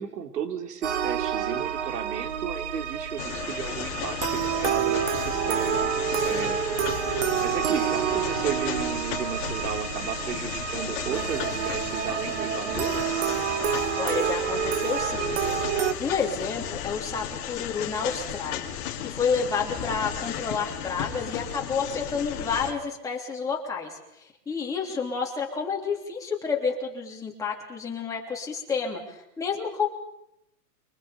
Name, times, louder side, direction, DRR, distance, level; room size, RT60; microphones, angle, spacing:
voice 1, 0.0-6.8 7.1-13.0, right 7 dB, 70° right, 6 dB, 3.3 m, -34 dB
sound 1, 0.8-15.9, right 8 dB, 45° right, 1.6 m, -28 dB
sound 2, 3.2-22.7, left 9 dB, 25° left, 2.5 m, -35 dB
voice 2, 14.0-15.6 16.0-29.9, left 5 dB, 5° left, -2 dB, 3.2 m, -30 dB
29.0 x 24.5 x 5.3 m, 0.80 s
hypercardioid pair, 165°, 48 cm